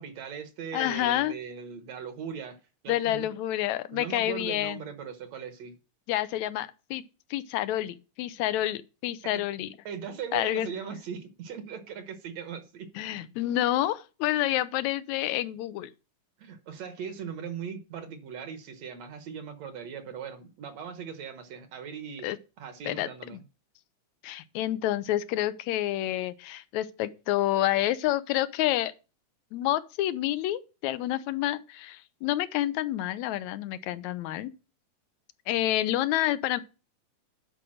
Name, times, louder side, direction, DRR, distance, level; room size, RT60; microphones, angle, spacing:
voice 1, 0.0-3.3 3.9-5.7 9.3-9.4 9.9-13.2 16.4-22.3 22.6-23.4, right 7 dB, 65° right, 2.1 m, -39 dB
voice 2, 0.7-1.3 2.9-4.8 6.1-7.0 7.3-9.7 10.3-10.7 13.0-15.9 22.2-22.4 22.9-23.1 24.2-28.9 29.5-34.5 35.5-36.6, left 14 dB, 75° left, 1.9 m, -28 dB
10.5 x 4.9 x 6.2 m
omnidirectional pair, 3.5 m